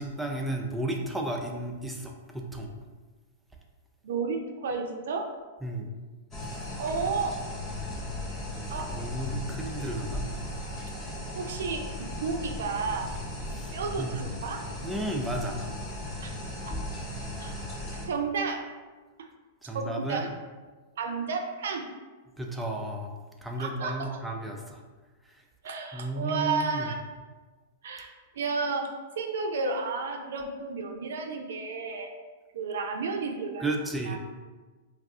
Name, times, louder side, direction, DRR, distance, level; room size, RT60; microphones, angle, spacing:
voice 1, 0.0-2.7 5.6-5.9 8.9-10.2 13.5-14.1 14.8-15.6 19.6-20.3 22.4-23.1 23.4-24.8 25.3-25.4 25.9-26.9 33.6-34.2, right 1 dB, 5° right, 0 dB, 0.4 m, -33 dB
voice 2, 4.0-5.3 6.8-7.4 8.7-8.9 11.4-13.1 13.7-14.6 16.2-16.3 16.6-16.7 17.4-17.5 18.1-18.6 19.7-20.3 21.0-21.8 23.6-24.2 25.6-26.9 27.8-28.9 29.2-32.1 32.5-33.6 34.1-34.2, right 4 dB, 75° right, 3 dB, 0.4 m, -32 dB
sound 1, 6.3-18.0, left 1 dB, 25° left, 0.8 m, -36 dB
2.4 x 2.3 x 3.5 m, 1.3 s
hypercardioid pair, 125°, 0 cm